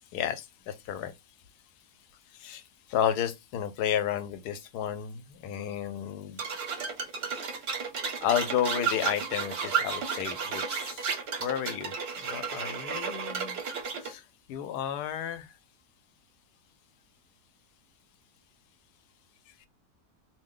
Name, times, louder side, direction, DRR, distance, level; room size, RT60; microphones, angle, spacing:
voice 1, 0.1-1.1 2.3-2.6 2.9-6.4 8.2-13.6 14.0-14.2 14.5-15.5, left 9 dB, 85° left, 1.1 m, -32 dB
sound 1, 6.4-14.1, right 6 dB, 60° right, 0.7 m, -33 dB
2.8 x 2.1 x 3.6 m
omnidirectional pair, 1.6 m